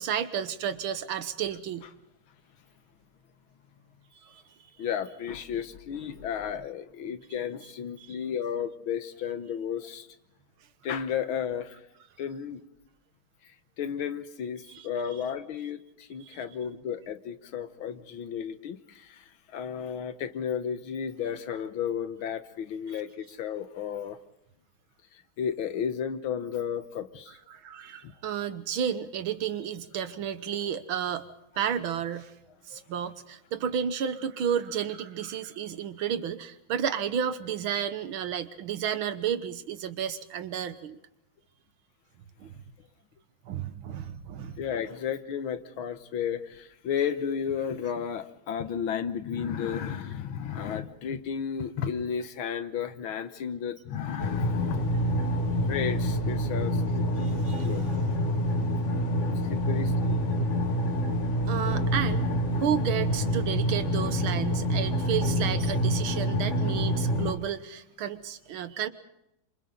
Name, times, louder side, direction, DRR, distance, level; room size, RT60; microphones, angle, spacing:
voice 1, 0.0-1.9 4.2-4.4 8.0-8.2 14.7-14.9 16.2-16.4 27.5-31.3 31.6-32.3 32.7-41.0 42.4-42.5 43.5-44.6 57.2-57.7 61.5-62.3 62.5-68.9, right 8 dB, 85° right, 11 dB, 1.9 m, -32 dB
voice 2, 4.8-10.1 10.8-11.8 12.2-12.6 13.4-24.2 25.1-27.4 28.0-28.1 32.7-32.8 44.6-54.9 55.7-57.9 59.4-60.2 61.0-61.2, left 8 dB, 85° left, 10 dB, 1.9 m, -33 dB
sound 1, 54.2-67.3, equal, 40° left, 1.8 m, -27 dB
28.5 x 26.0 x 3.9 m, 0.83 s
omnidirectional pair, 2.2 m